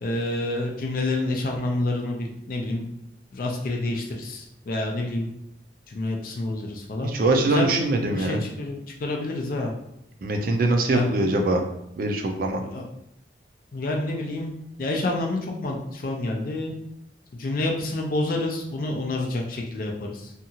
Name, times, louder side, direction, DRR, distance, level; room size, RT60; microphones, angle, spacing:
voice 1, 0.0-2.8 3.3-5.3 5.9-7.1 7.4-9.7 10.9-11.3 12.6-12.8 13.7-14.5 14.8-16.7 17.3-20.3, left 2 dB, 50° left, 0 dB, 0.4 m, -28 dB
voice 2, 7.0-8.4 10.2-11.6 12.0-12.6, right 2 dB, 50° right, 3 dB, 0.4 m, -23 dB
2.7 x 2.3 x 2.7 m, 0.78 s
head